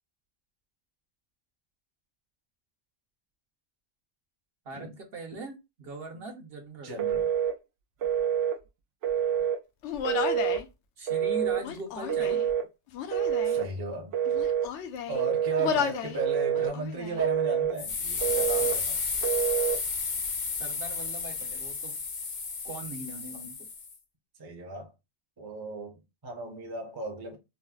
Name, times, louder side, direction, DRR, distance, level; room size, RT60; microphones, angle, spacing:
voice 1, 4.6-7.0 11.0-12.4 20.6-22.0 22.6-23.6, right 2 dB, 60° right, 1.0 m, -41 dB
voice 2, 6.8-7.3 13.4-14.1 15.1-19.0 24.4-24.9 25.4-27.4, right 3 dB, 25° right, 0.6 m, -36 dB
Telephone, 7.0-7.6 8.0-8.6 9.0-9.6 10.1-10.6 11.1-11.6 12.1-12.7 13.1-13.7 14.1-14.7 15.2-15.7 16.2-16.7 17.2-17.8 18.2-18.8 19.2-19.8, right 9 dB, 85° right, 0.9 m, -27 dB
Human voice, 9.8-10.7 11.6-12.5 12.9-13.6 14.3-15.2 15.6-16.2 16.5-17.2, left 8 dB, 80° left, 0.9 m, -33 dB
sound 1, 17.8-23.9, left 4 dB, 50° left, 0.6 m, -32 dB
4.0 x 2.0 x 2.3 m
omnidirectional pair, 1.2 m